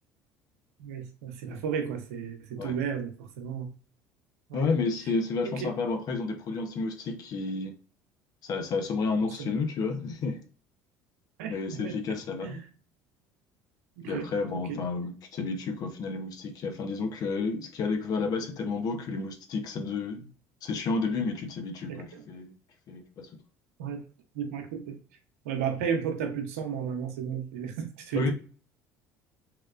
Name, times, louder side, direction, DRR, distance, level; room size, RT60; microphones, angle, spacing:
voice 1, 0.8-3.7 4.5-4.7 5.4-5.7 9.4-9.5 11.4-12.0 12.4-12.6 14.0-14.3 14.5-14.8 21.9-22.2 23.8-24.0 24.3-25.0 25.4-28.3, right 7 dB, 85° right, 0.7 m, -33 dB
voice 2, 4.5-7.7 8.4-10.4 11.5-12.6 14.1-20.3 20.6-22.5 22.9-23.3 28.1-28.3, left 4 dB, 55° left, 0.8 m, -31 dB
3.1 x 2.8 x 2.5 m
hypercardioid pair, 80°, 8 cm